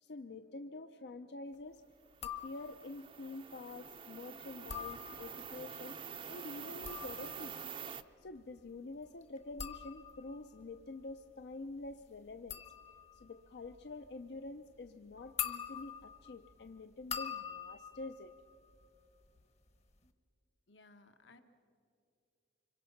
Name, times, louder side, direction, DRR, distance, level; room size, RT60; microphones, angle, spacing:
voice 1, 0.0-1.8 2.2-6.0 6.3-7.6 8.2-12.6 13.1-18.3, left 2 dB, 60° left, 9 dB, 0.5 m, -47 dB
sound 1, 2.1-3.0 4.5-5.6 6.6-19.3 19.6-20.1, left 8 dB, 35° left, 1.0 m, -46 dB
sound 2, 2.1-8.0, right 7 dB, 30° right, 0.5 m, -47 dB
voice 2, 20.7-21.4, left 3 dB, 80° left, 7 dB, 1.4 m, -60 dB
25.5 x 23.0 x 5.9 m, 2.5 s
head